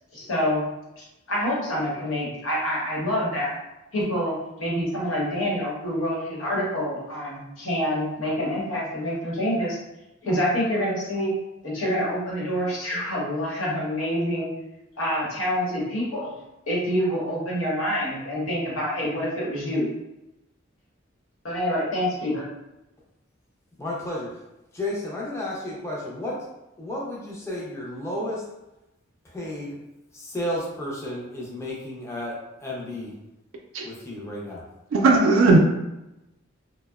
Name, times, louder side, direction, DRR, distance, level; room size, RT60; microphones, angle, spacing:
voice 1, 0.1-0.6 1.0-3.5 3.9-4.3 4.6-9.8 10.2-11.3 11.6-14.5 15.0-16.3 16.7-19.9 21.4-22.4, equal, 85° left, -5 dB, 0.9 m, -26 dB
voice 2, 23.8-24.4 24.7-26.5 26.8-28.5 29.2-29.8 30.1-33.1 33.8-34.6, left 1 dB, 15° left, -5 dB, 0.4 m, -32 dB
voice 3, 34.9-35.6, right 3 dB, 75° right, 2 dB, 0.3 m, -16 dB
2.7 x 2.0 x 2.2 m, 0.93 s
head